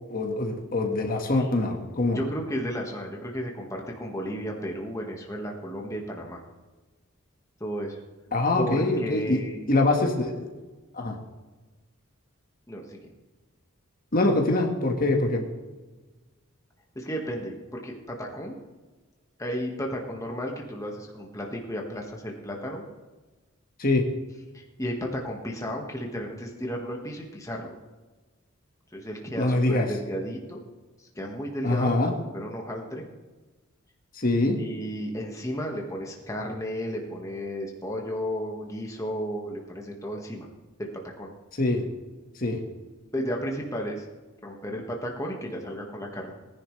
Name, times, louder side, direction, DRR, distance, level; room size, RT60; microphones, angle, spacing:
voice 1, 0.1-2.2 8.3-9.4 9.7-10.5 10.9-11.2 14.1-15.5 23.8-24.0 29.4-29.9 31.6-32.1 34.1-34.6 41.6-41.8 42.4-42.6, left 2 dB, 40° left, 2 dB, 1.6 m, -24 dB
voice 2, 2.1-6.4 7.6-8.0 8.6-9.6 12.7-13.1 16.9-18.5 19.4-22.8 24.5-27.8 28.9-30.6 31.0-33.0 34.5-40.5 40.8-40.9 41.2-41.3 43.1-44.0 44.4-46.3, equal, 15° left, 0 dB, 1.6 m, -33 dB
19.0 x 10.5 x 3.3 m, 1.2 s
head